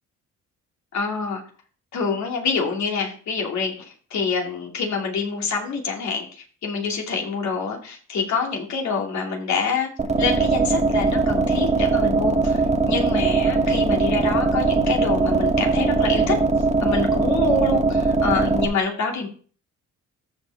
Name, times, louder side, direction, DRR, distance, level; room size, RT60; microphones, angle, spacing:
voice 1, 0.9-1.4 1.9-9.9 10.2-16.4 16.8-19.3, left 5 dB, 65° left, 1 dB, 2.6 m, -26 dB
sound 1, 10.0-18.6, right 4 dB, 20° right, 1.2 m, -20 dB
14.0 x 5.2 x 3.5 m, 0.42 s
cardioid pair, 90°, 30 cm